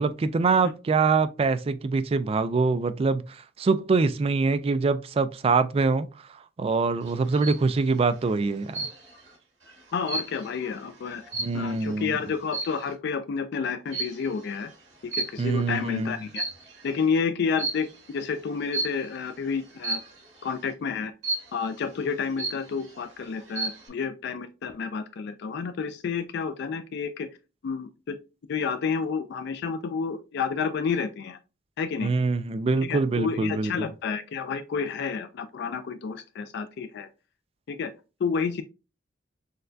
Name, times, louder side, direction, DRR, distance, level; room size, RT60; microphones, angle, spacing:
voice 1, 0.0-8.9 11.4-12.1 15.4-16.1 32.0-33.7, right 4 dB, 30° right, 0.3 m, -24 dB
sound 1, 7.1-7.7 8.7-9.3 9.7-11.9 12.5-12.9 13.9-14.3 15.1-15.7 16.2-16.9 17.6-17.9 18.7-19.1 19.8-20.2 21.2-21.7 22.1-22.2 22.4-23.0 23.4-23.9, right 3 dB, 65° right, 2.1 m, -32 dB
voice 2, 9.9-11.2 11.5-14.7 15.0-16.4 16.8-20.0 20.4-21.1 21.5-27.3 27.6-28.2 28.5-31.4 31.8-32.1 32.8-37.1 37.7-37.9 38.2-38.6, left 5 dB, 60° left, 0.4 m, -30 dB
6.5 x 2.2 x 2.5 m
head